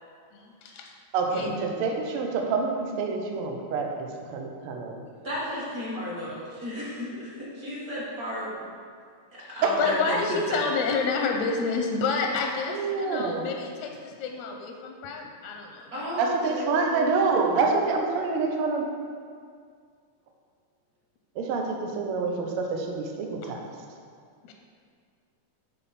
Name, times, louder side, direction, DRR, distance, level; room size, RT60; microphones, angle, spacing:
voice 1, 0.3-0.9 1.3-1.6 9.4-16.0 23.4-23.5 24.4-24.5, left 4 dB, 80° left, 2 dB, 1.7 m, -29 dB
voice 2, 1.1-5.0 12.7-13.5 16.2-18.8 21.4-23.6, right 4 dB, 85° right, 1 dB, 1.2 m, -27 dB
voice 3, 5.2-8.7 9.6-10.2 10.5-10.6 15.9-16.9, equal, 40° right, -8 dB, 1.5 m, -33 dB
10.0 x 4.0 x 4.2 m, 2.1 s
omnidirectional pair, 3.5 m